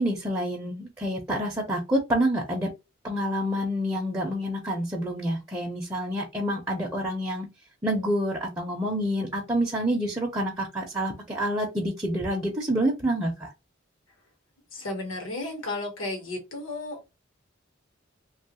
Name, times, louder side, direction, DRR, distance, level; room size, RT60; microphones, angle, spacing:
voice 1, 0.0-2.7 3.0-7.5 7.8-13.5, equal, 15° right, 0.5 m, -28 dB
voice 2, 14.7-17.1, left 2 dB, 80° left, 1.0 m, -33 dB
2.9 x 2.3 x 2.8 m
head